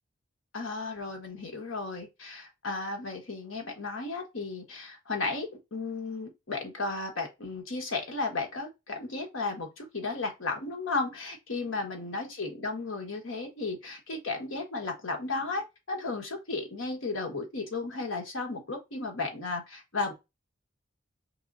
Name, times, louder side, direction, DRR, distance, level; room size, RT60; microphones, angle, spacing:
voice 1, 0.5-20.1, left 3 dB, 90° left, 1.3 m, -34 dB
4.7 x 3.7 x 2.5 m
head